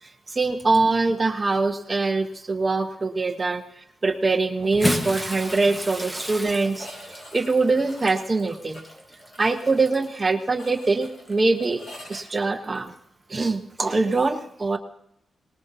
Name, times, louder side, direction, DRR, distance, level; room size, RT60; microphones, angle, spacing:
voice 1, 0.3-8.8 9.4-11.8 12.1-12.9 13.3-14.8, right 3 dB, 25° right, 6 dB, 0.9 m, -23 dB
sound 1, 4.6-5.2 5.5-5.6 5.8-5.9 6.7-12.3, equal, 55° left, 5.6 m, -45 dB
Bathtub (filling or washing) / Splash splatter, 4.6-10.3 11.2-11.3 12.8-12.9, equal, 5° left, 1.2 m, -32 dB
22.5 x 19.5 x 2.7 m, 0.76 s
wide cardioid pair, 125°, 0 cm